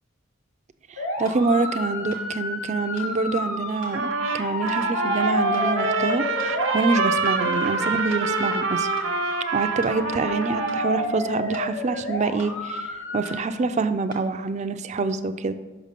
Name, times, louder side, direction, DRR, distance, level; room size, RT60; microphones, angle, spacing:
voice 1, 0.9-8.9 9.5-15.5, right 3 dB, 35° right, 10 dB, 0.4 m, -26 dB
sound 1, 1.0-13.4, left 1 dB, 75° left, 1.3 m, -30 dB
sound 2, 1.2-1.4 2.1-2.3 3.0-3.1 3.8-4.0 4.7-4.8 5.5-5.7 6.4-6.6 7.2-7.4 8.1-8.3 9.0-9.1 9.8-10.0 10.7-10.8 11.5-11.7 12.4-12.6 13.2-13.4 14.1-14.3, left 1 dB, 45° left, 1.4 m, -44 dB
Trumpet, 3.9-11.0, right 4 dB, 70° right, 0.7 m, -26 dB
5.7 x 5.1 x 6.7 m, 1.3 s
head